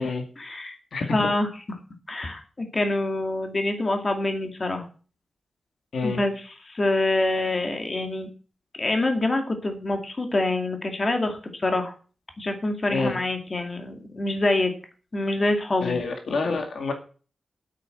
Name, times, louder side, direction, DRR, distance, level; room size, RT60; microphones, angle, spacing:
voice 1, 0.0-0.8 1.1-1.5 2.1-4.9 6.0-8.3 8.8-11.9 12.4-14.7 15.1-16.0, left 2 dB, 30° left, 5 dB, 2.2 m, -26 dB
voice 2, 0.9-1.3 5.9-6.2 12.9-13.2 15.8-16.9, left 4 dB, 65° left, 5 dB, 2.1 m, -27 dB
8.9 x 8.6 x 7.7 m, 0.39 s
wide cardioid pair, 160°, 0 cm